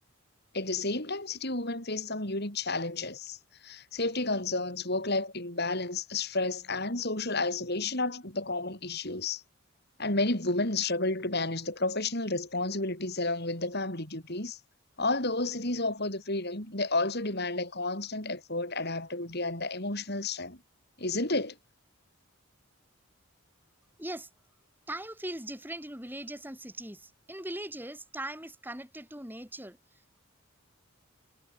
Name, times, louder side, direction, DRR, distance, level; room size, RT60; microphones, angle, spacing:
voice 1, 0.5-3.4 3.6-9.4 10.0-14.6 15.0-20.6 21.0-21.6, left 2 dB, 45° left, 5.4 m, -31 dB
voice 2, 24.0-24.3 24.9-30.2, right 1 dB, 10° right, 6.9 m, -40 dB
head